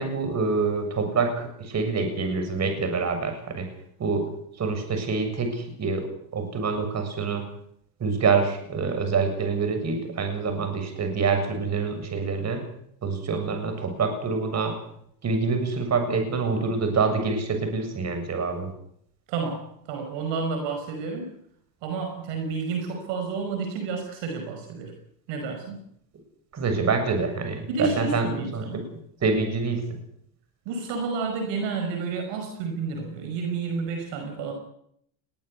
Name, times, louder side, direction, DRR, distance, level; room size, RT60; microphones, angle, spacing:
voice 1, 0.0-3.7 4.0-4.3 4.6-6.1 6.3-7.4 8.0-12.6 13.0-14.7 15.2-18.7 26.5-28.3 28.5-28.8 29.2-30.0, right 4 dB, 30° right, 6 dB, 7.5 m, -26 dB
voice 2, 19.3-21.3 21.8-24.9 25.3-25.8 27.7-28.9 30.7-34.5, right 4 dB, 60° right, 5 dB, 5.6 m, -30 dB
21.5 x 17.0 x 8.5 m, 0.72 s
supercardioid pair, 100°, 49 cm